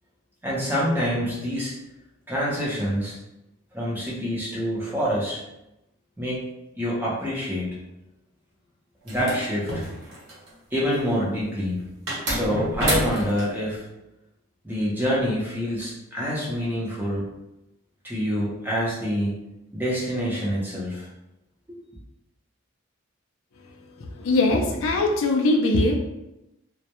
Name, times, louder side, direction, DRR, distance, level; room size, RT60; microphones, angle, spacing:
voice 1, 0.4-1.7 2.3-3.2 3.7-5.4 6.2-6.4 6.8-7.8 9.0-9.7 10.7-11.8 12.2-13.9 14.6-17.2 18.0-19.4 19.7-21.1 21.7-21.8, equal, 10° right, -6 dB, 0.6 m, -26 dB
sound 1, 9.1-10.5 12.1-13.5, right 1 dB, 65° right, 0.9 m, -28 dB
voice 2, 24.0-26.0, left 2 dB, 70° left, 2 dB, 0.4 m, -21 dB
2.2 x 2.0 x 2.8 m, 0.92 s
head